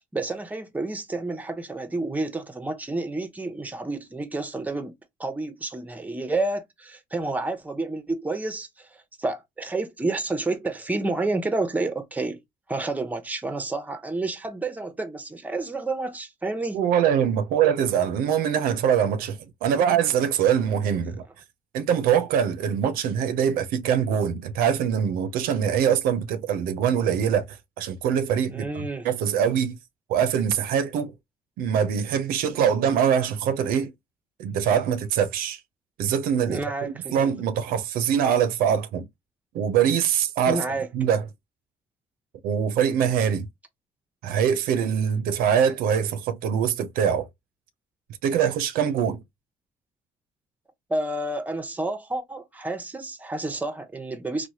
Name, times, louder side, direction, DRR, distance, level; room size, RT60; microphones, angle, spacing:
voice 1, 0.1-4.9 5.2-12.4 12.7-16.8 28.5-29.1 36.5-37.3 40.5-40.9 50.9-54.5, right 2 dB, 10° right, 0.6 m, -30 dB
voice 2, 16.7-21.2 21.7-28.7 29.0-29.8 30.1-31.1 31.6-33.9 34.4-35.6 36.0-39.1 39.5-40.6 40.9-41.2 42.4-43.5 44.2-47.3 48.2-49.2, right 8 dB, 90° right, 0.5 m, -23 dB
3.0 x 2.1 x 2.7 m
cardioid pair, 95°, 14 cm